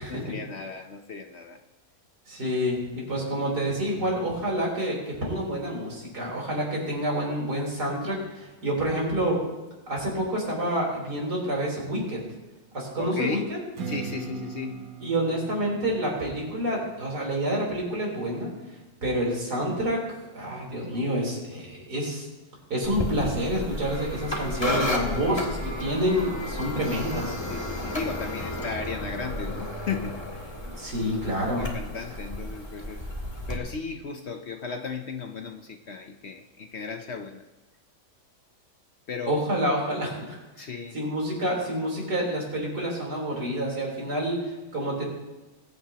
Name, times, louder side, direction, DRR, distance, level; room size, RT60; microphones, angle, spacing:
voice 1, 0.0-1.6 13.0-13.5 13.9-14.9 26.8-27.1 27.5-30.6 31.6-33.0 33.5-37.4 39.1-39.4 40.6-41.0, left 5 dB, 55° left, 6 dB, 0.9 m, -35 dB
voice 2, 2.3-9.4 9.9-12.2 12.7-13.6 15.0-18.5 19.0-20.0 20.3-22.3 22.7-27.3 30.7-31.7 39.3-40.7 40.9-45.0, equal, 85° right, -3 dB, 4.3 m, -28 dB
Strum, 13.8-19.0, right 7 dB, 65° right, 1.3 m, -41 dB
sound 1, 22.8-33.6, left 1 dB, 15° left, 1.5 m, -33 dB
21.0 x 9.5 x 2.9 m, 1.1 s
omnidirectional pair, 1.7 m